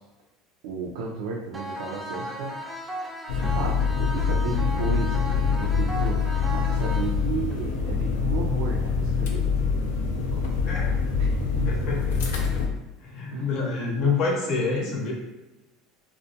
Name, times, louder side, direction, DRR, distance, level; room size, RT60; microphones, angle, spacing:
voice 1, 0.6-2.6 3.3-9.5 10.2-10.9 11.2-11.9 13.3-13.5, right 5 dB, 80° right, -2 dB, 0.3 m, -33 dB
sound 1, 1.5-7.5, right 1 dB, 15° right, 0.4 m, -36 dB
sound 2, 3.3-12.7, left 5 dB, 85° left, 0.4 m, -25 dB
voice 2, 10.6-10.9 11.6-12.2 13.0-15.1, left 4 dB, 60° left, -1 dB, 0.7 m, -27 dB
2.2 x 2.1 x 2.7 m, 1.0 s
supercardioid pair, 105°, 0 cm